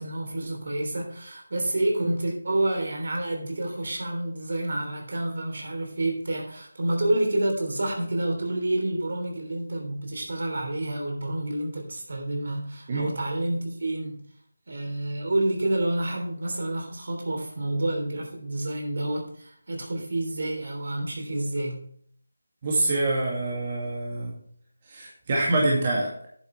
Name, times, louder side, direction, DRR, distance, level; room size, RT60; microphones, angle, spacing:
voice 1, 0.0-14.2 14.7-21.9, right 1 dB, 60° right, 2 dB, 3.3 m, -29 dB
voice 2, 22.6-24.4 24.9-26.3, right 2 dB, 30° right, -4 dB, 2.3 m, -26 dB
10.0 x 8.2 x 3.3 m, 0.62 s
figure-of-eight pair, 165°, 0 cm